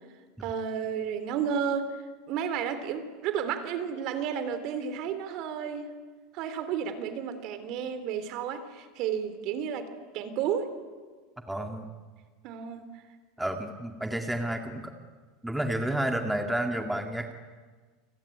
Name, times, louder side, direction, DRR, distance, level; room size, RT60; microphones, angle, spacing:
voice 1, 0.4-2.0 2.3-5.9 6.3-9.9 10.1-10.7 12.4-13.0, right 8 dB, 55° right, 11 dB, 3.2 m, -32 dB
voice 2, 11.5-11.9 13.4-14.9 15.4-17.3, right 1 dB, 5° right, 4 dB, 2.0 m, -30 dB
28.5 x 18.5 x 10.0 m, 1.5 s
supercardioid pair, 135°, 0 cm